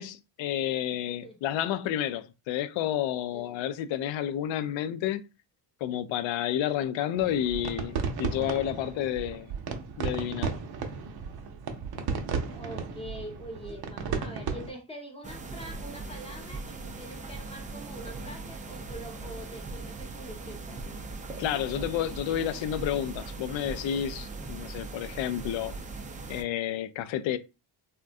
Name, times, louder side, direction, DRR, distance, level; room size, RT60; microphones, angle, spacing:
voice 1, 0.0-5.2 5.8-9.5 10.0-10.5 21.4-25.7 26.3-27.4, left 11 dB, 75° left, 0.5 m, -30 dB
voice 2, 0.8-1.4 3.3-3.6 12.5-20.8, equal, 10° left, 0.9 m, -44 dB
sound 1, 7.2-14.7, right 5 dB, 55° right, 0.7 m, -34 dB
sound 2, 15.2-26.4, right 3 dB, 20° right, 0.4 m, -40 dB
3.6 x 2.2 x 2.5 m
cardioid pair, 105°, 46 cm